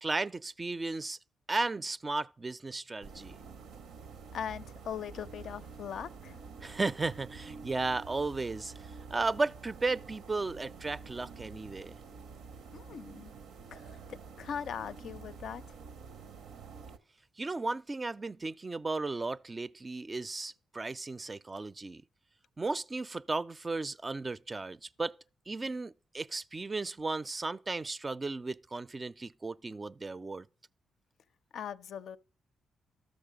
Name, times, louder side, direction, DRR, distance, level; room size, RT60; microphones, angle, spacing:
voice 1, 0.0-1.2 1.5-3.4 6.6-12.0 17.4-22.0 22.6-25.2 25.5-30.5, right 3 dB, 30° right, 0.4 m, -35 dB
sound 1, 3.0-17.0, right 5 dB, 80° right, 0.6 m, -48 dB
voice 2, 4.3-6.4 12.7-13.3 13.7-15.8 31.5-32.2, left 8 dB, 70° left, 0.4 m, -40 dB
12.5 x 6.5 x 5.1 m
supercardioid pair, 55°, 0 cm